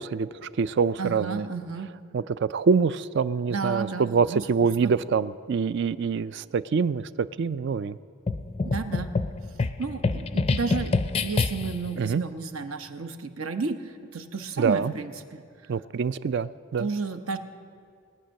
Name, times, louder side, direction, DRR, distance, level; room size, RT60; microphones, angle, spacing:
voice 1, 0.0-1.4 2.1-8.0 12.0-12.2 14.6-14.9 15.7-16.9, right 5 dB, 55° right, 16 dB, 0.3 m, -25 dB
voice 2, 1.0-1.9 3.5-4.9 8.6-9.1 9.8-10.9 11.2-15.4 16.8-17.4, right 4 dB, 75° right, 7 dB, 0.9 m, -32 dB
sound 1, 8.3-11.9, left 3 dB, 25° left, 0.4 m, -27 dB
21.0 x 8.9 x 6.4 m, 2.3 s
head